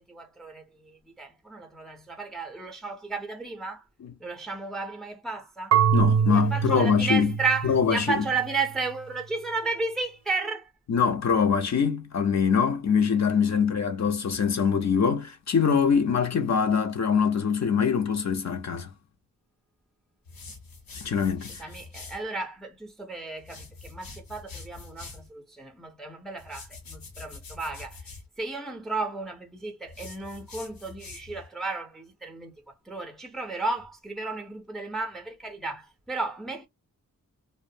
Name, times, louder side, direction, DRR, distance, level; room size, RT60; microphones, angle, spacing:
voice 1, 0.0-3.8 4.2-5.8 6.2-10.7 21.6-36.7, right 3 dB, ahead, 0.5 m, -33 dB
Marimba xylophone / Wood, 5.7-8.6, right 7 dB, 55° right, 0.4 m, -25 dB
voice 2, 5.9-7.3 7.6-8.1 10.9-18.9 20.9-21.6, left 6 dB, 55° left, 0.5 m, -24 dB
sound 1, 20.3-22.2 23.4-25.3 26.4-28.3 29.9-31.5, left 4 dB, 80° left, 0.9 m, -45 dB
2.5 x 2.1 x 2.6 m
wide cardioid pair, 140°, 34 cm